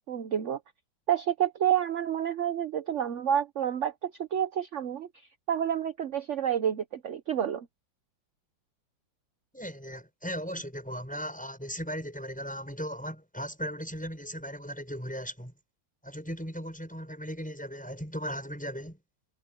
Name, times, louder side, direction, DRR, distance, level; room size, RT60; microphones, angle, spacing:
voice 1, 0.1-0.6 1.1-7.7, right 9 dB, 50° right, 0.9 m, -29 dB
voice 2, 9.5-15.5 16.0-19.0, equal, 5° left, 6.2 m, -37 dB
omnidirectional pair, 2.2 m